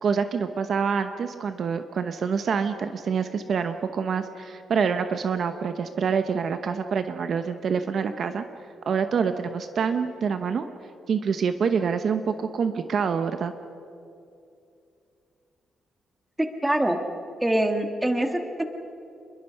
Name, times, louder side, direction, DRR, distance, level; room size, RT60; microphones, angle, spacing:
voice 1, 0.0-8.4 8.9-10.7 11.1-13.5, right 6 dB, 50° right, 9 dB, 0.9 m, -26 dB
voice 2, 16.4-17.0 17.4-18.6, right 1 dB, 10° right, 5 dB, 1.6 m, -24 dB
27.0 x 22.0 x 5.7 m, 2.6 s
cardioid pair, 150°, 0 cm